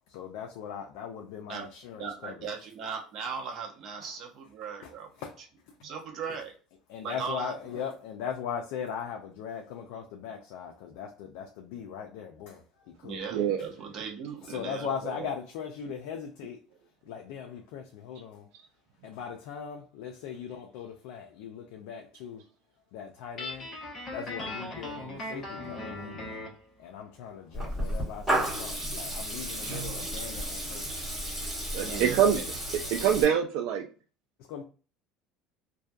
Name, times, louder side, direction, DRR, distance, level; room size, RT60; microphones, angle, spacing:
voice 1, 0.1-2.4 4.8-4.9 5.2-5.4 5.7-5.8 6.9-13.2 14.4-16.6 17.0-18.5 19.0-22.4 22.9-23.7 24.1-26.4 26.8-31.2 31.6-32.0 34.4-34.6, left 7 dB, 80° left, 0.4 m, -39 dB
voice 2, 2.0-5.1 5.8-6.5 7.0-7.6 13.0-15.3 31.8-32.4, right 6 dB, 45° right, 0.8 m, -38 dB
Guitar, 23.4-26.6, left 1 dB, 35° left, 0.7 m, -38 dB
Water tap faucet / Liquid, 27.5-33.2, right 1 dB, 5° right, 1.1 m, -33 dB
voice 3, 31.7-32.4 32.9-33.9, right 9 dB, 70° right, 0.3 m, -25 dB
2.6 x 2.2 x 2.3 m
cardioid pair, 145°, 0 cm